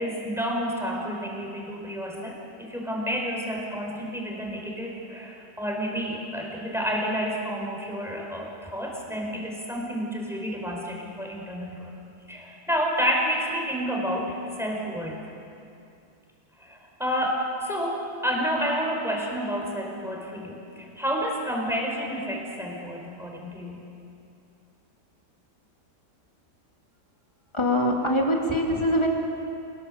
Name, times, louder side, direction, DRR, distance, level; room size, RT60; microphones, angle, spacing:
voice 1, 0.0-11.9 12.3-15.2 16.6-23.8, equal, ahead, -1 dB, 4.8 m, -30 dB
voice 2, 27.5-29.1, left 1 dB, 15° left, -1 dB, 3.1 m, -23 dB
27.0 x 19.5 x 7.7 m, 2.6 s
omnidirectional pair, 1.8 m